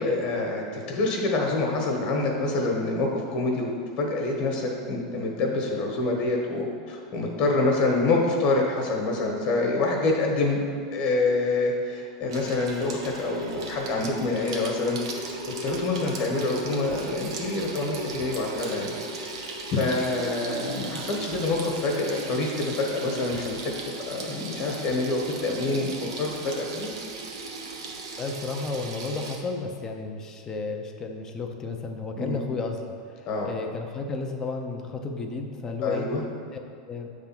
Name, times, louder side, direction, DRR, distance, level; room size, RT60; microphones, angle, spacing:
voice 1, 0.0-3.7 4.0-10.6 10.9-15.0 15.6-23.7 24.1-26.9 32.2-32.4 33.3-33.5 35.8-36.2, left 2 dB, 40° left, 0 dB, 1.3 m, -26 dB
Water tap faucet / Sink (filling or washing), 12.3-29.4, right 2 dB, 85° right, 1.0 m, -36 dB
voice 2, 28.2-36.1 36.5-36.6 36.9-37.1, left 4 dB, 20° left, 4 dB, 0.6 m, -33 dB
7.7 x 3.6 x 5.9 m, 2.2 s
supercardioid pair, 150°, 3 cm